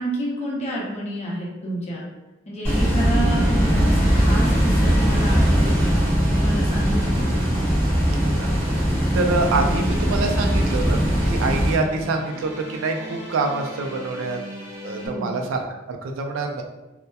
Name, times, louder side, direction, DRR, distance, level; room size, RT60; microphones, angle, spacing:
voice 1, 0.0-2.0 2.5-6.0 6.3-7.5 15.0-15.4, right 1 dB, 35° left, -3 dB, 0.6 m, -29 dB
sound 1, 2.6-11.7, equal, 10° left, 1.1 m, -20 dB
voice 2, 9.1-14.4 14.8-16.6, right 3 dB, 80° right, 3 dB, 0.4 m, -26 dB
sound 2, 9.2-15.1, equal, 15° right, 0.7 m, -38 dB
2.7 x 2.1 x 2.2 m, 1.1 s
head